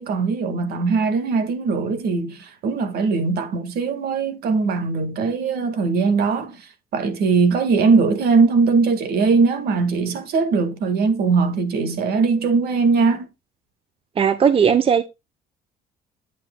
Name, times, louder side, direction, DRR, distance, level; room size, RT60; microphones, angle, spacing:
voice 1, 0.0-13.3, right 4 dB, 65° right, 1.7 m, -20 dB
voice 2, 14.2-15.0, right 7 dB, 35° right, 0.7 m, -17 dB
8.5 x 8.2 x 2.2 m
cardioid pair, 110°, 17 cm